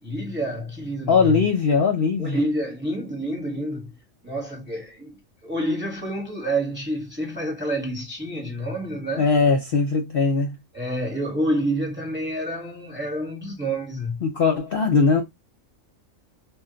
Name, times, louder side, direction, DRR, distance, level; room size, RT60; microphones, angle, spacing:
voice 1, 0.0-1.5 2.2-4.0 4.2-5.1 5.4-9.3 10.7-14.2, right 1 dB, 10° right, 0.9 m, -28 dB
voice 2, 1.1-2.4 9.2-10.5 14.2-15.2, left 4 dB, 55° left, 0.7 m, -20 dB
2.2 x 2.2 x 3.7 m
omnidirectional pair, 1.4 m